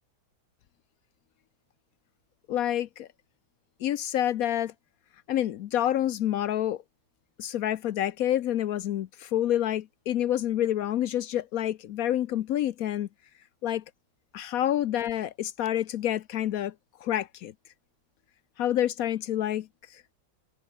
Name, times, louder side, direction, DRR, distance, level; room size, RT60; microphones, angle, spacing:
voice 1, 2.5-3.1 3.8-4.7 5.3-6.8 7.4-13.1 13.6-13.8 14.3-16.7 17.0-17.5 18.6-20.0, left 11 dB, 80° left, 0.7 m, -28 dB
omnidirectional pair, 2.3 m